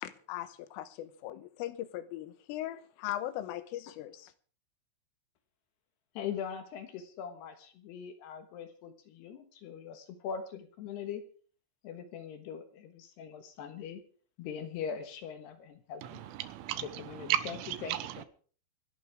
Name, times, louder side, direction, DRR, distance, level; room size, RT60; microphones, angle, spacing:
voice 1, 0.0-4.3, left 13 dB, 85° left, 3.6 m, -39 dB
voice 2, 6.1-11.3 11.8-14.0 14.4-16.3 16.8-18.2, left 7 dB, 70° left, 3.0 m, -41 dB
voice 3, 16.0-18.3, right 13 dB, 80° right, 3.6 m, -35 dB
26.0 x 11.0 x 3.5 m
omnidirectional pair, 5.7 m